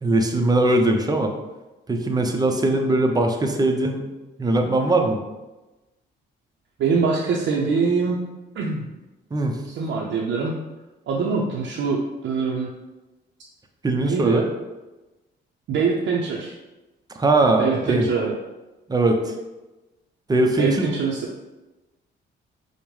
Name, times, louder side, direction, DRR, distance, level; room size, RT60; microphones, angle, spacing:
voice 1, 0.0-1.3 1.9-4.0 4.4-5.2 9.3-9.6 13.8-14.4 17.2-18.1 18.9-19.3 20.3-20.9, right 2 dB, 20° right, 4 dB, 0.5 m, -20 dB
voice 2, 6.8-8.2 8.5-8.9 9.8-10.5 11.1-12.7 14.0-14.4 15.7-16.5 17.6-18.3 20.6-21.3, right 5 dB, 65° right, -3 dB, 0.5 m, -23 dB
5.2 x 2.1 x 3.1 m, 1.1 s
cardioid pair, 90°, 20 cm